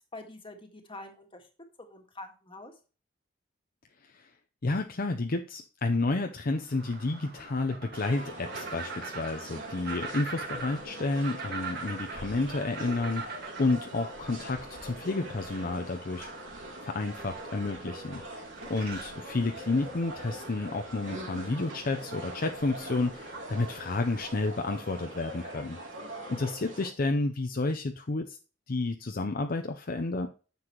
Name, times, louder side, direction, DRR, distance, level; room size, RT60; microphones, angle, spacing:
voice 1, 0.1-1.5 1.8-2.7 26.0-26.4, left 2 dB, 30° left, 4 dB, 1.8 m, -46 dB
voice 2, 4.6-16.3 16.8-25.8 26.3-28.4 28.7-30.3, left 3 dB, 50° left, 5 dB, 0.7 m, -31 dB
sound 1, 6.6-24.3, right 4 dB, 60° right, 1.9 m, -44 dB
sound 2, 7.9-26.9, right 1 dB, 80° right, 3.0 m, -43 dB
9.8 x 7.0 x 3.0 m, 0.36 s
head